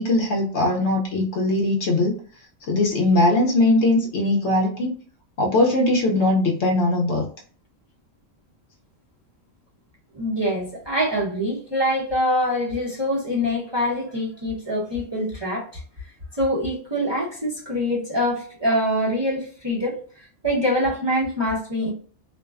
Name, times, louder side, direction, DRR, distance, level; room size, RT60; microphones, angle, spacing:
voice 1, 0.0-2.2 2.7-4.9 5.4-7.3, left 2 dB, 65° left, 0.8 m, -20 dB
voice 2, 10.1-21.9, equal, 25° right, 0.7 m, -25 dB
2.5 x 2.1 x 2.3 m
omnidirectional pair, 1.4 m